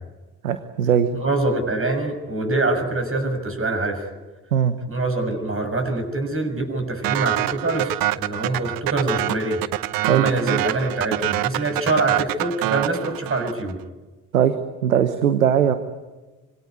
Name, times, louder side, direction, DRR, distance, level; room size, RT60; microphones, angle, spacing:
voice 1, 0.4-1.1 4.5-4.7 10.1-10.2 14.3-14.5 14.8-15.7, right 9 dB, 90° right, 11 dB, 1.0 m, -19 dB
voice 2, 1.1-4.1 4.9-9.6 10.1-13.8, right 2 dB, 35° right, 6 dB, 6.8 m, -24 dB
sound 1, 7.0-13.7, right 16 dB, 60° right, 0.8 m, -25 dB
25.5 x 22.5 x 9.7 m, 1.2 s
hypercardioid pair, 50°, 40 cm